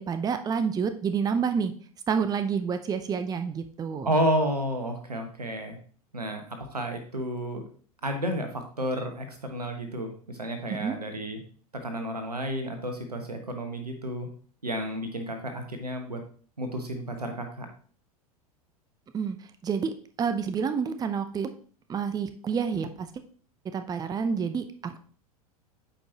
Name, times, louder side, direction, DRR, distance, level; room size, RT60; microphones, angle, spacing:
voice 1, 0.0-1.7 2.1-4.1 10.7-11.0 19.1-19.4 19.6-19.9 20.2-21.5 21.9-23.1 23.7-25.0, right 6 dB, 20° right, 10 dB, 0.6 m, -28 dB
voice 2, 4.0-5.8 6.1-7.6 8.0-11.4 11.8-14.3 14.6-16.2 16.6-17.7, equal, 90° right, 5 dB, 1.3 m, -31 dB
8.6 x 5.2 x 2.9 m, 0.43 s
figure-of-eight pair, 85°, 19 cm